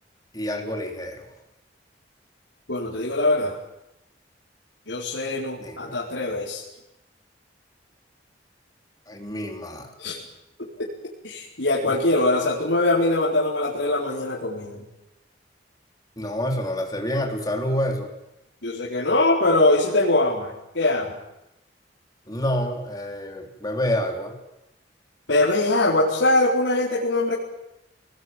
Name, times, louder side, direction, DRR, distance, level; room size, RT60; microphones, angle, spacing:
voice 1, 0.3-1.3 5.6-6.0 9.1-9.9 11.9-12.0 16.2-18.1 22.3-24.4, left 1 dB, 20° left, 2 dB, 3.7 m, -28 dB
voice 2, 2.7-3.5 4.9-6.6 10.0-10.2 10.8-10.9 11.2-14.8 18.6-21.1 25.3-27.3, left 2 dB, 85° left, -5 dB, 4.7 m, -22 dB
25.5 x 20.0 x 9.2 m, 0.91 s
head